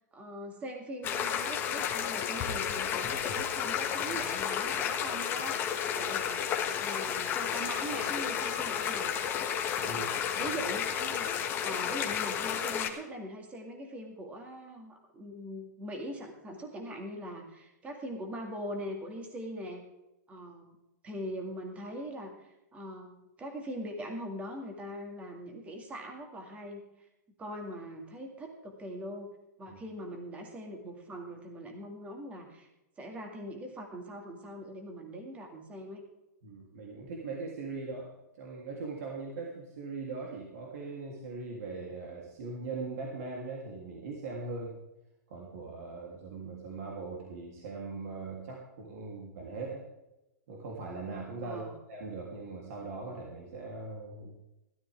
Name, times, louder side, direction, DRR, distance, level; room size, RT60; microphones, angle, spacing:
voice 1, 0.1-6.5 6.8-9.2 9.8-11.3 11.6-19.8 20.3-20.8 21.0-27.1 27.4-29.3 29.6-32.7 33.0-36.0 51.4-51.8, equal, 15° right, 3 dB, 2.2 m, -42 dB
sound 1, 1.0-12.9, left 8 dB, 20° left, 1.5 m, -32 dB
voice 2, 9.8-10.1 10.3-10.5 29.7-29.8 36.4-38.1 38.3-44.8 45.3-49.8 50.5-54.4, right 3 dB, 55° right, -2 dB, 3.3 m, -40 dB
16.5 x 12.5 x 3.6 m, 0.94 s
hypercardioid pair, 160°, 10 cm